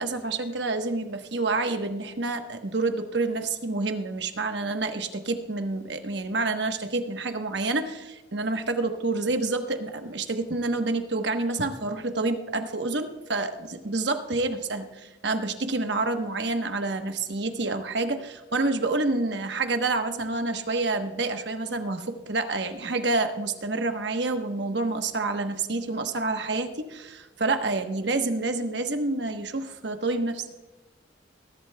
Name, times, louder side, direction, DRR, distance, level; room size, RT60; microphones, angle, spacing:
voice 1, 0.0-30.4, right 3 dB, 60° right, 6 dB, 1.1 m, -28 dB
20.5 x 11.5 x 2.2 m, 1.1 s
head